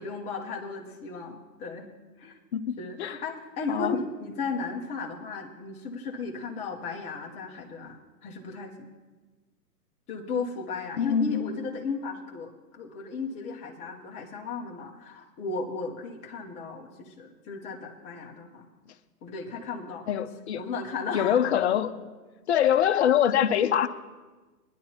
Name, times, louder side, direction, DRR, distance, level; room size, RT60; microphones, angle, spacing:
voice 1, 0.0-1.9 2.2-2.4 2.8-8.7 10.1-18.7 19.2-20.1 20.6-21.5, left 4 dB, 15° left, 0 dB, 0.9 m, -35 dB
voice 2, 2.5-3.2 3.7-4.0 11.0-11.5 20.1-20.6 21.1-21.9 22.5-23.9, left 9 dB, 45° left, 9 dB, 0.7 m, -24 dB
21.0 x 10.5 x 2.9 m, 1.3 s
hypercardioid pair, 145°, 48 cm